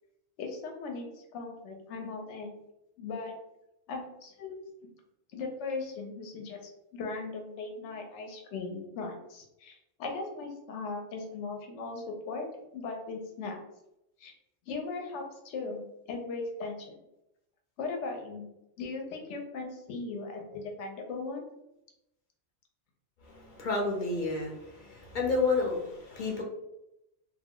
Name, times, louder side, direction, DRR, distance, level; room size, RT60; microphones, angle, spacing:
voice 1, 0.4-2.6 3.0-3.3 3.9-4.9 5.3-12.5 12.7-13.6 14.2-14.3 14.7-17.0 17.8-18.5 18.8-21.5, left 3 dB, 85° left, 2 dB, 0.9 m, -38 dB
voice 2, 23.2-26.4, left 3 dB, 50° left, 0 dB, 0.7 m, -30 dB
2.3 x 2.1 x 3.5 m, 0.86 s
omnidirectional pair, 1.2 m